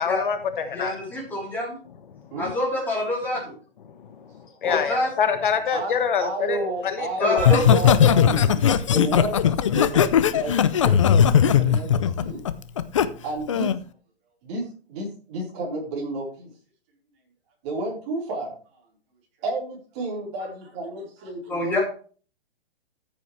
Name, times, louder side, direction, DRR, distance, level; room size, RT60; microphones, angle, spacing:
voice 1, 0.0-0.9 3.9-7.4, left 7 dB, 55° left, 9 dB, 1.2 m, -26 dB
voice 2, 0.7-1.8 2.4-3.5 4.6-5.1 7.2-7.6 21.5-21.8, left 1 dB, 5° left, -4 dB, 3.7 m, -26 dB
voice 3, 6.2-8.6 8.9-10.0 10.4-10.5 10.8-12.4 13.2-13.7 14.4-14.6 14.9-16.5 17.6-18.5 19.4-21.8, right 2 dB, 30° right, -2 dB, 4.3 m, -31 dB
Laughter, 7.4-13.1 13.5-13.8, left 8 dB, 30° left, 0.5 m, -18 dB
14.0 x 8.3 x 3.3 m, 0.40 s
hypercardioid pair, 165°, 31 cm